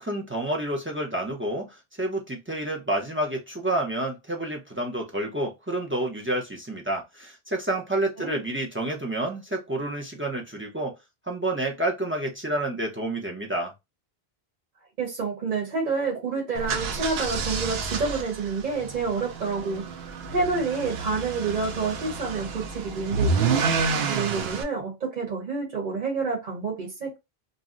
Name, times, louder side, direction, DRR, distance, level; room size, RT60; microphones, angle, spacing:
voice 1, 0.0-11.0 11.3-13.7, right 1 dB, 15° right, 0.5 m, -29 dB
voice 2, 15.0-19.9 20.3-23.7 24.1-27.2, right 4 dB, 50° right, 1.0 m, -28 dB
sound 1, 16.5-24.6, right 4 dB, 75° right, 0.8 m, -29 dB
2.5 x 2.1 x 3.6 m
omnidirectional pair, 1.0 m